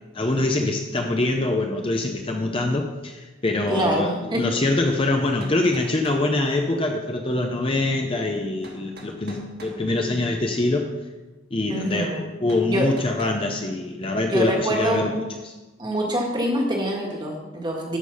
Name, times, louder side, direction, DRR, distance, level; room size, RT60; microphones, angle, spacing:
voice 1, 0.1-10.9 11.5-15.5, left 2 dB, 25° left, 3 dB, 0.7 m, -24 dB
voice 2, 3.7-4.5 11.7-12.3 12.7-12.9 14.3-15.2 15.8-18.0, equal, 20° right, 0 dB, 1.7 m, -25 dB
sound 1, 5.4-6.3 8.6-9.8 12.5-13.4, right 2 dB, 50° right, 1.6 m, -43 dB
13.0 x 5.2 x 5.5 m, 1.2 s
head